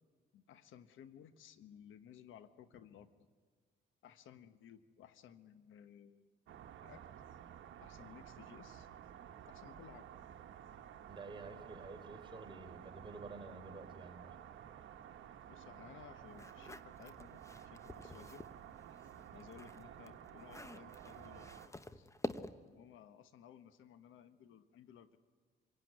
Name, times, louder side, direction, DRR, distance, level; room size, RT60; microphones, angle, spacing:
voice 1, 0.3-3.1 4.0-6.3 6.8-7.1 7.8-8.9 9.5-10.1 15.5-18.4 19.3-22.1 22.6-25.2, left 9 dB, 80° left, 11 dB, 1.2 m, -58 dB
sound 1, 6.5-21.7, right 9 dB, 75° right, 1.3 m, -53 dB
voice 2, 11.1-14.4, right 3 dB, 25° right, 3 dB, 4.1 m, -50 dB
sound 2, 16.3-18.6 19.0-22.8, left 2 dB, 15° left, 1.0 m, -48 dB
27.0 x 17.5 x 9.6 m, 1.5 s
cardioid pair, 90°, 20 cm